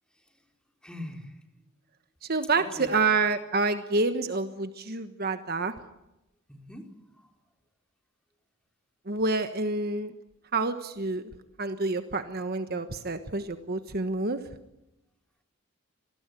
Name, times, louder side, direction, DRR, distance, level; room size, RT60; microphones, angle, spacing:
voice 1, 0.8-1.4 2.2-2.3 2.6-2.9 6.5-7.3, left 1 dB, 5° left, 3 dB, 3.6 m, -43 dB
voice 2, 2.3-5.7 9.1-10.1 10.5-11.2 11.6-14.4, right 3 dB, 45° right, 9 dB, 1.3 m, -28 dB
27.0 x 19.5 x 9.2 m, 0.92 s
head